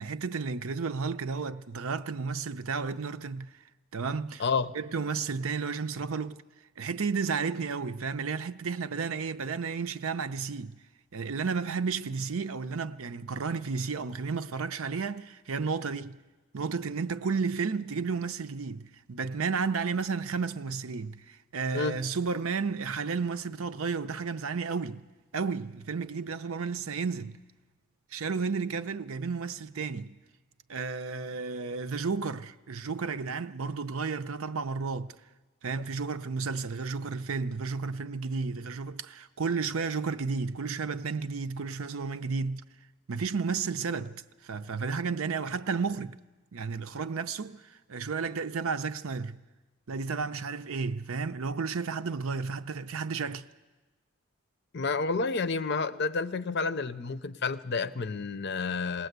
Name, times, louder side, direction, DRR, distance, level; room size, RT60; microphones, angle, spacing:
voice 1, 0.0-3.5 3.9-4.4 4.7-6.4 6.8-10.8 11.1-16.2 16.5-25.0 25.3-27.4 28.1-30.2 30.7-35.1 35.6-42.6 43.1-46.2 46.5-49.4 49.9-53.5, right 5 dB, 70° right, 0.6 m, -32 dB
voice 2, 4.4-4.7 21.7-22.0 54.7-59.1, left 4 dB, 50° left, 0.6 m, -30 dB
20.5 x 18.5 x 8.1 m
head